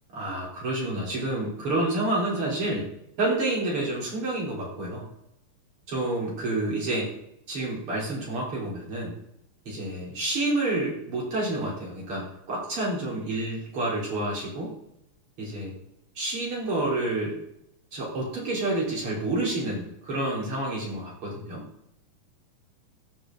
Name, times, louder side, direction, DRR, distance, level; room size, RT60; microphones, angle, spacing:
voice 1, 0.1-2.9 3.2-5.0 5.9-7.1 7.5-9.2 9.7-14.7 15.4-15.7 16.2-17.4 17.9-21.6, right 2 dB, 45° right, -4 dB, 4.2 m, -29 dB
15.0 x 6.1 x 3.7 m, 0.77 s
omnidirectional pair, 3.5 m